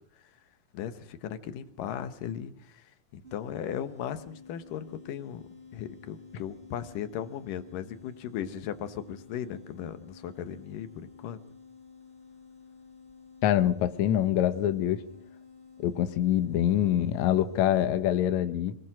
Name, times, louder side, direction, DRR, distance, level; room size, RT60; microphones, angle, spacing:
voice 1, 0.7-2.8 3.1-5.4 5.7-11.4, left 9 dB, 90° left, 11 dB, 2.8 m, -37 dB
sound 1, 3.2-18.0, left 5 dB, 15° right, 3.1 m, -52 dB
voice 2, 13.4-15.0 15.8-18.8, left 11 dB, 70° left, 10 dB, 2.2 m, -25 dB
26.0 x 19.0 x 6.1 m, 0.63 s
omnidirectional pair, 3.7 m